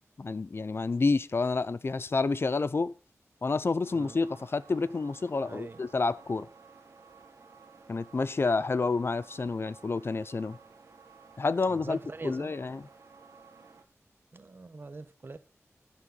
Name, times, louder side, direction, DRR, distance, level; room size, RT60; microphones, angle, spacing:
voice 1, 0.0-2.9 3.4-6.5 7.9-10.6 11.4-12.0 12.2-12.8, left 3 dB, 50° left, 0.6 m, -29 dB
sound 1, 3.8-13.8, right 5 dB, 70° right, 1.6 m, -55 dB
voice 2, 5.4-5.8 11.7-12.5 14.3-15.4, right 3 dB, 45° right, 1.1 m, -43 dB
12.0 x 11.0 x 4.1 m
wide cardioid pair, 95°, 5 cm